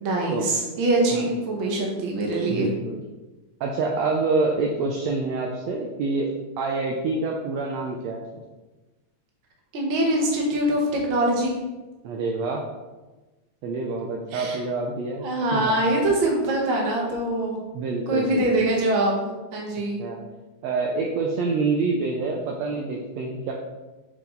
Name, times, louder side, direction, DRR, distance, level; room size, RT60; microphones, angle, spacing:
voice 1, 0.0-2.7 9.7-11.6 14.3-14.6 15.2-17.6 18.1-20.0, right 1 dB, 50° right, -1 dB, 1.8 m, -23 dB
voice 2, 2.5-3.0 3.6-6.3 6.6-8.4 12.0-12.6 13.6-15.2 15.5-15.7 17.7-18.5 20.0-20.2 20.6-23.5, right 3 dB, 75° right, 0 dB, 1.7 m, -26 dB
6.8 x 4.7 x 3.8 m, 1.2 s
omnidirectional pair, 3.4 m